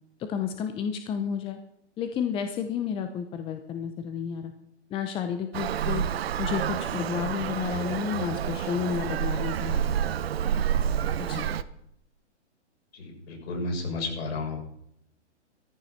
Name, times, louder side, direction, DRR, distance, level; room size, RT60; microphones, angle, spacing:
voice 1, 0.3-1.6 2.0-4.5 4.9-6.0 6.4-9.9 11.2-11.5, left 8 dB, 15° left, 7 dB, 0.8 m, -31 dB
Traffic noise roadway noise, 5.5-11.6, right 9 dB, 60° right, 1.0 m, -28 dB
voice 2, 12.9-14.6, left 3 dB, 60° left, 0 dB, 6.7 m, -32 dB
14.5 x 14.0 x 5.9 m, 0.74 s
hypercardioid pair, 135°, 35 cm